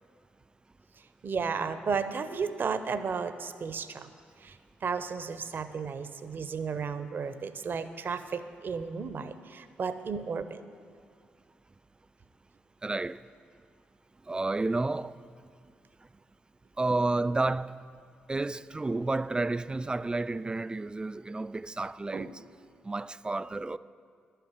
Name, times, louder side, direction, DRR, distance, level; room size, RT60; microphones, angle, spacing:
voice 1, 1.2-4.1 4.4-10.6 22.1-22.3, right 5 dB, 50° right, 0.7 m, -34 dB
voice 2, 12.8-13.2 14.3-15.2 16.8-17.8 18.3-22.3 22.9-23.8, right 2 dB, 20° right, 0.3 m, -30 dB
11.5 x 5.8 x 8.0 m
hypercardioid pair, 45°, 4 cm